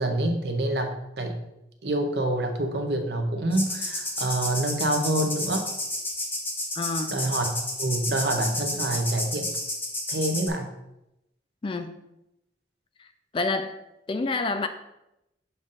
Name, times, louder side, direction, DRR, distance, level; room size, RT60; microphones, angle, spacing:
voice 1, 0.0-1.4 1.8-5.7 7.1-7.5 7.8-9.5 10.1-10.8, right 1 dB, 65° right, 0.8 m, -27 dB
sound 1, 3.5-10.5, left 1 dB, 10° left, 0.7 m, -31 dB
voice 2, 6.8-7.2 11.6-12.0 13.0-13.1 13.3-13.8 14.1-14.7, left 3 dB, 30° left, 0.3 m, -28 dB
6.9 x 2.5 x 5.5 m
head